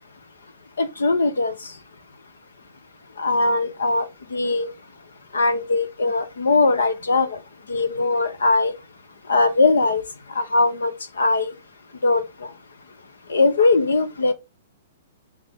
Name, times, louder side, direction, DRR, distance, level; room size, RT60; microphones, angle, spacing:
voice 1, 0.8-1.7 3.2-4.7 5.3-7.4 7.7-8.7 9.3-10.0 10.3-11.5 12.0-12.5 13.3-14.3, left 3 dB, 70° left, 1.2 m, -20 dB
9.4 x 4.2 x 4.1 m
figure-of-eight pair, 110°, 0 cm